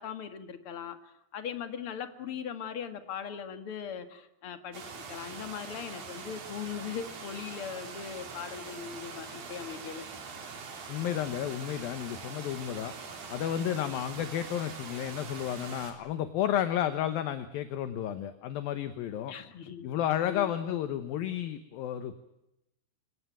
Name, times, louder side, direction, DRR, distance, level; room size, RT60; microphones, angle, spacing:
voice 1, 0.0-10.0 13.5-13.9 19.3-19.9 20.3-20.6, left 8 dB, 50° left, 9 dB, 1.7 m, -40 dB
sound 1, 4.7-15.9, right 5 dB, 55° right, 5.0 m, -43 dB
voice 2, 10.9-12.9 13.3-19.3 19.8-22.2, left 11 dB, 70° left, 11 dB, 2.5 m, -32 dB
26.5 x 18.0 x 9.2 m, 0.86 s
omnidirectional pair, 5.0 m